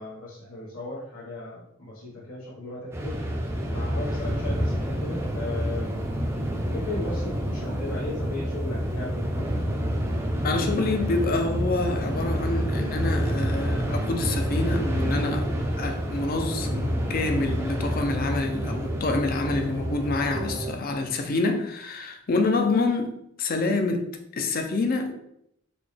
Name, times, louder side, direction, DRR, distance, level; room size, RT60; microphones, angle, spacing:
voice 1, 0.0-3.2 3.7-6.0 6.7-9.6, left 2 dB, 80° left, -8 dB, 1.1 m, -36 dB
sound 1, 2.9-20.7, equal, 15° right, 0.4 m, -28 dB
voice 2, 10.4-15.5 15.8-25.1, left 3 dB, 45° left, 5 dB, 0.5 m, -27 dB
4.1 x 2.2 x 3.2 m, 0.75 s
head